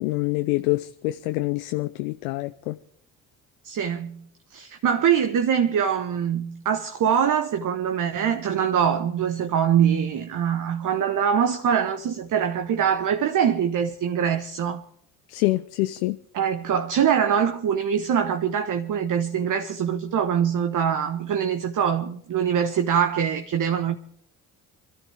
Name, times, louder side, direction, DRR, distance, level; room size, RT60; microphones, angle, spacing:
voice 1, 0.0-2.8 15.3-16.2, left 20 dB, 75° left, 0.7 m, -26 dB
voice 2, 3.6-4.2 4.5-14.8 16.3-24.0, right 8 dB, 50° right, 1.3 m, -23 dB
25.0 x 13.5 x 3.5 m
hypercardioid pair, 55°, 41 cm